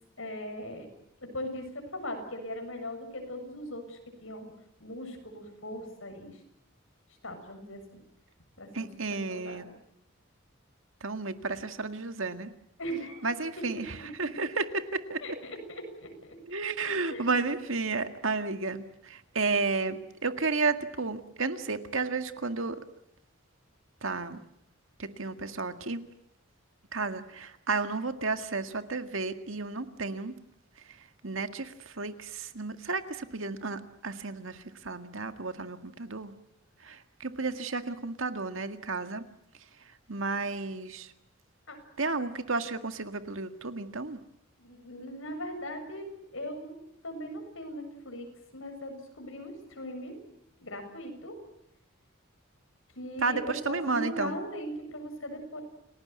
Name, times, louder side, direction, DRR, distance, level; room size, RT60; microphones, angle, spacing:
voice 1, 0.2-0.9 1.2-4.5 4.8-6.3 7.2-8.0 8.6-8.9 9.3-9.6 12.8-13.4 15.2-16.1 16.9-17.3 41.7-41.8 44.6-46.1 46.3-46.7 47.0-48.3 48.5-50.2 50.6-51.4 53.0-55.6, equal, 75° left, 6 dB, 7.3 m, -39 dB
voice 2, 8.7-9.7 11.0-12.5 13.2-15.2 16.5-22.8 24.0-24.4 25.0-26.0 26.9-30.3 31.2-36.3 36.8-39.2 40.1-41.1 42.0-44.2 53.2-54.4, right 3 dB, 70° right, 8 dB, 1.9 m, -32 dB
29.5 x 18.5 x 9.5 m, 0.78 s
head